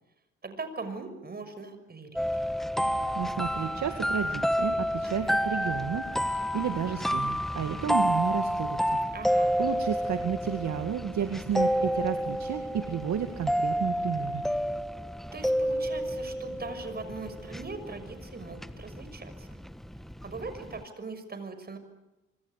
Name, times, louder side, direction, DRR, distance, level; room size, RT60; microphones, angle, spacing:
voice 1, 0.4-2.2 9.1-9.6 15.3-19.5 20.2-21.8, right 4 dB, 30° right, 10 dB, 6.3 m, -40 dB
sound 1, 2.2-20.8, equal, ahead, 1.2 m, -30 dB
voice 2, 3.2-9.0 9.6-14.4, right 8 dB, 65° right, 6 dB, 2.2 m, -32 dB
26.0 x 26.0 x 8.4 m, 0.97 s
cardioid pair, 90°, 30 cm